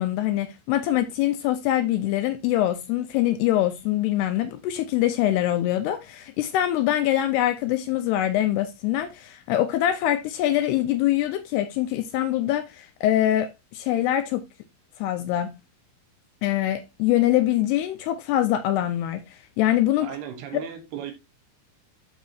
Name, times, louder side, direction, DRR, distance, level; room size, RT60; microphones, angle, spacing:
voice 1, 0.0-14.4 15.0-15.5 16.4-20.2, left 13 dB, 80° left, 2.5 m, -24 dB
voice 2, 20.0-21.1, right 9 dB, 70° right, 2.9 m, -36 dB
11.5 x 4.7 x 2.7 m
omnidirectional pair, 5.1 m